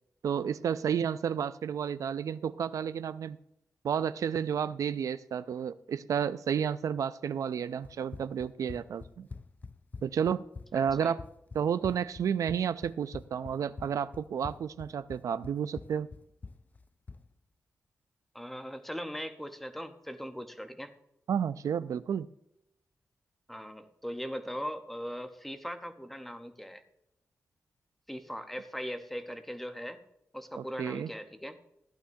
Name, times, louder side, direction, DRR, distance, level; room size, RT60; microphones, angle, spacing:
voice 1, 0.2-3.4 3.8-9.3 10.0-10.4 10.7-11.2 11.5-16.1 21.3-22.3 30.5-31.1, right 8 dB, 75° right, 14 dB, 0.4 m, -31 dB
Run, 7.8-17.3, left 4 dB, 30° left, 0.3 m, -46 dB
voice 2, 18.3-20.9 23.5-26.8 28.1-30.0 30.3-31.6, equal, 5° left, 8 dB, 0.8 m, -39 dB
15.0 x 11.5 x 2.7 m, 0.79 s
wide cardioid pair, 145°, 6 cm